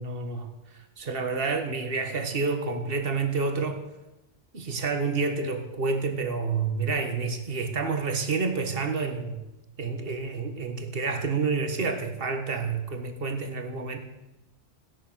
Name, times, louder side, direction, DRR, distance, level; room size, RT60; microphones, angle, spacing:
voice 1, 0.0-3.8 4.5-9.4 9.8-14.0, right 4 dB, 55° right, 6 dB, 1.8 m, -29 dB
16.5 x 11.0 x 6.3 m, 1.0 s
omnidirectional pair, 1.2 m